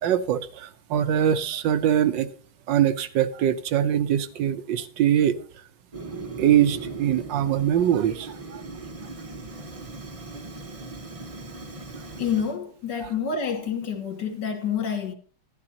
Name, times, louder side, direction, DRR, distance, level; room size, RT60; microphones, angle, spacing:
voice 1, 0.0-2.3 2.7-5.4 6.4-8.6 13.0-13.1, right 10 dB, 70° right, 1.3 m, -23 dB
Fire, 5.9-12.6, right 3 dB, 30° right, 0.7 m, -38 dB
voice 2, 12.2-15.1, left 7 dB, 55° left, 2.1 m, -28 dB
13.5 x 11.5 x 2.8 m
omnidirectional pair, 2.3 m